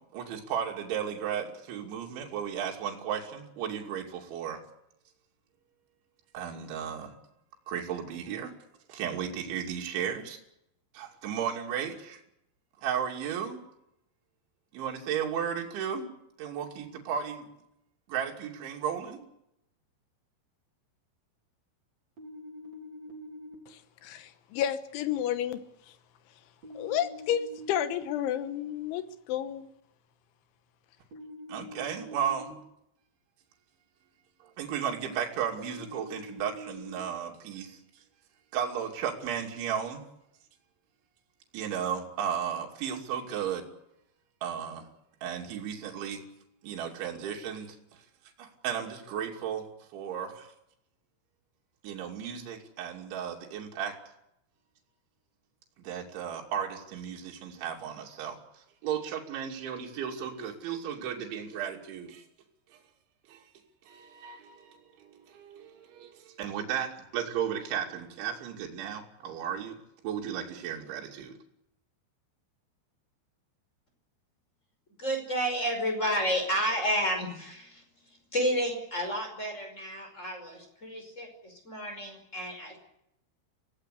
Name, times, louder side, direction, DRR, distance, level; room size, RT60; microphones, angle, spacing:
voice 1, 0.1-4.6 6.3-7.1 7.7-8.5 8.9-10.4 10.9-12.2 12.8-13.6 14.7-16.1 16.4-17.5 18.1-19.2 31.5-32.6 34.4-37.8 38.5-40.0 41.5-43.7 44.4-44.9 45.2-46.2 46.6-48.0 48.4-49.6 49.9-50.5 51.8-54.0 55.8-62.2 63.3-63.4 63.9-69.8 70.0-71.4, right 8 dB, 70° right, 4.9 m, -34 dB
sound 1, 22.2-23.5 26.6-28.0 31.1-32.5 35.6-37.0, left 1 dB, 35° right, 4.5 m, -45 dB
voice 2, 23.7-25.6 26.7-29.7, left 10 dB, 75° left, 3.4 m, -31 dB
voice 3, 75.0-77.8 78.1-82.8, equal, 15° left, 5.2 m, -31 dB
25.0 x 17.0 x 8.3 m
omnidirectional pair, 5.7 m